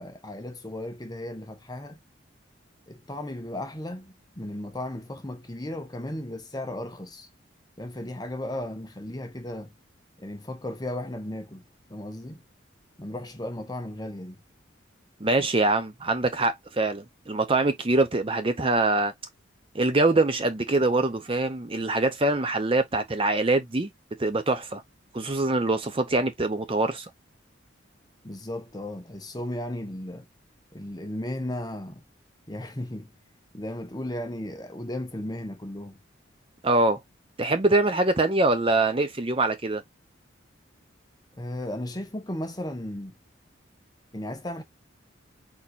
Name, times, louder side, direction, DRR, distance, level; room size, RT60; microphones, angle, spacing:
voice 1, 0.0-2.0 2.9-7.3 7.8-9.7 10.2-11.6 11.9-12.4 13.0-14.4 28.2-30.3 30.7-32.0 32.5-33.2 33.5-36.0 41.4-43.1 44.1-44.6, left 1 dB, 20° left, 1.0 m, -35 dB
voice 2, 15.2-19.1 19.7-23.9 24.2-24.8 25.1-27.1 36.6-37.0 37.4-39.8, right 2 dB, 30° right, 0.6 m, -24 dB
4.3 x 4.3 x 2.5 m
head